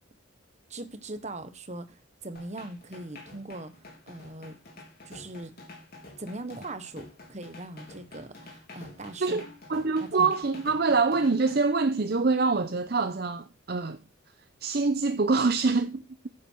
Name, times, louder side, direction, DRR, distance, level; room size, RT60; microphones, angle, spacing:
voice 1, 0.7-3.7 4.1-4.6 5.0-5.5 6.2-9.4 10.0-10.3, right 2 dB, 35° right, 1.2 m, -40 dB
sound 1, 2.3-11.6, left 2 dB, 50° left, 3.1 m, -48 dB
voice 2, 9.2-14.0 14.6-16.0, right 4 dB, 50° right, 0.6 m, -25 dB
9.6 x 8.6 x 4.5 m
head